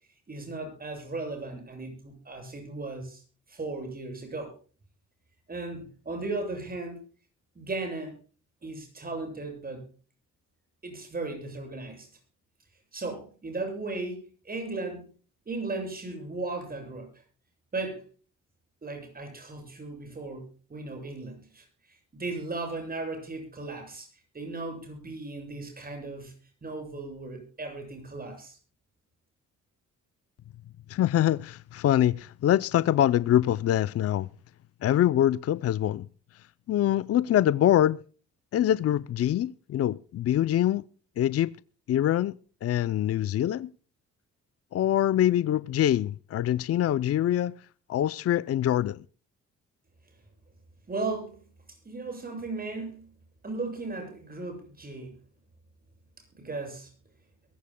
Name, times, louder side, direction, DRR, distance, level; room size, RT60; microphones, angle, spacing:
voice 1, 0.3-3.2 3.5-4.5 5.5-7.0 7.6-8.2 8.6-9.8 10.8-12.1 12.9-15.0 15.5-17.1 17.7-18.0 18.8-21.7 22.1-24.1 24.3-26.3 26.6-28.6 50.9-51.4 51.8-53.1 53.4-55.1 56.3-56.9, right 3 dB, 30° right, 7.6 m, -36 dB
voice 2, 30.9-34.3 34.8-36.1 36.7-38.0 38.5-40.8 41.2-41.5 41.9-42.3 42.6-43.7 44.7-47.5 47.9-49.0, left 12 dB, 55° left, 0.5 m, -24 dB
22.5 x 15.0 x 2.2 m
cardioid pair, 90°, 30 cm